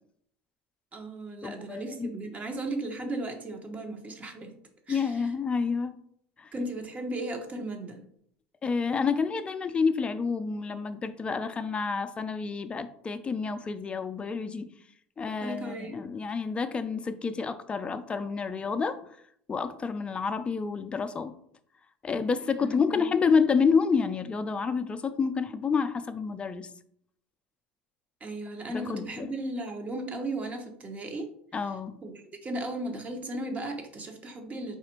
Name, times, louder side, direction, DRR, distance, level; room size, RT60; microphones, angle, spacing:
voice 1, 0.9-4.5 4.9-5.1 6.5-8.0 15.4-16.0 22.6-23.0 28.2-31.3 32.0-34.8, right 1 dB, 30° right, 4 dB, 0.9 m, -36 dB
voice 2, 1.4-2.1 4.9-5.9 6.4-6.5 8.6-14.7 15.2-19.0 19.5-21.3 22.0-26.7 28.7-29.3 31.5-32.0, left 5 dB, 20° left, 10 dB, 0.4 m, -29 dB
4.2 x 2.4 x 4.4 m, 0.66 s
supercardioid pair, 100°, 5 cm